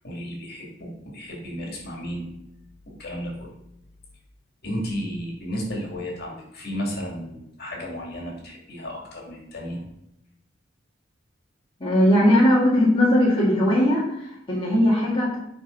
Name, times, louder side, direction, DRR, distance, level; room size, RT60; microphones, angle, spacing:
voice 1, 0.0-2.3 2.9-3.5 4.6-9.8, equal, 55° left, -1 dB, 2.7 m, -33 dB
voice 2, 11.8-15.4, left 1 dB, 25° left, -6 dB, 1.9 m, -19 dB
9.2 x 5.4 x 4.0 m, 0.81 s
head